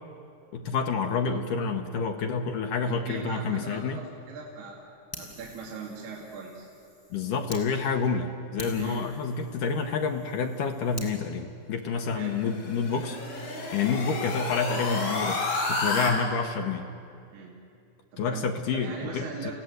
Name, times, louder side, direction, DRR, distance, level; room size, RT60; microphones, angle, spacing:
voice 1, 0.5-4.0 7.1-13.2 13.7-16.9 18.2-19.5, left 5 dB, 75° left, 4 dB, 2.0 m, -28 dB
voice 2, 2.9-6.7 8.8-9.1 11.9-12.4 15.9-16.2 17.3-17.5 18.1-19.5, right 5 dB, 70° right, -3 dB, 4.1 m, -40 dB
Fire, 5.1-7.6 8.1-8.2 8.6-11.1, left 1 dB, 5° left, 2.5 m, -46 dB
sound 1, 12.1-16.1, left 2 dB, 40° left, 3.8 m, -31 dB
29.0 x 16.0 x 7.9 m, 2.5 s
omnidirectional pair, 4.9 m